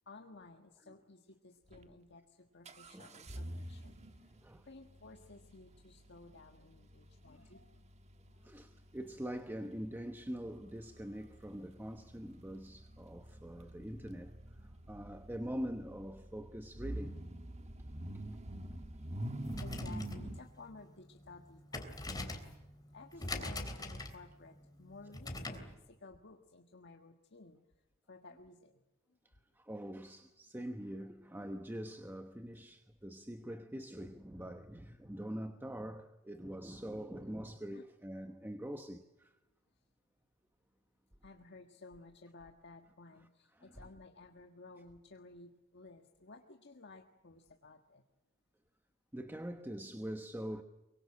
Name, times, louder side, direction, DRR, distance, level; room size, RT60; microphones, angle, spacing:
voice 1, 0.1-4.4 4.6-7.8 8.2-8.5 14.8-14.9 19.3-22.5 22.9-27.6 28.1-28.8 37.7-37.8 41.2-48.0, left 3 dB, 55° left, 1.6 m, -56 dB
sound 1, 1.7-1.8 2.7-20.4, right 1 dB, 35° right, 1.5 m, -47 dB
voice 2, 2.9-3.2 4.4-4.6 7.3-7.5 8.4-17.2 29.6-39.3 43.5-43.9 49.1-50.6, equal, 10° right, 1.0 m, -44 dB
sound 2, 19.4-25.7, left 2 dB, 20° left, 3.3 m, -44 dB
24.0 x 23.5 x 8.8 m
head